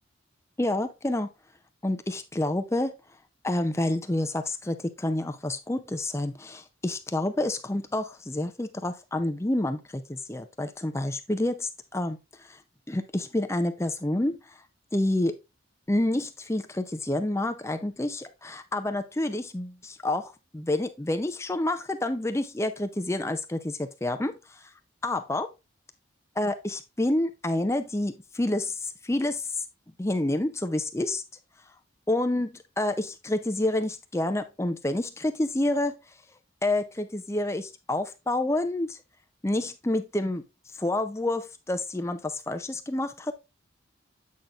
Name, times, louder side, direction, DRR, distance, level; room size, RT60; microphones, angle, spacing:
voice 1, 0.6-1.3 1.8-2.9 3.4-12.6 12.9-14.4 14.9-15.4 15.9-24.6 25.0-25.5 26.4-29.6 30.0-31.2 32.1-36.0 36.6-39.0 39.4-40.4 40.8-43.3, left 1 dB, 15° left, 0.5 m, -28 dB
8.4 x 6.0 x 2.5 m
head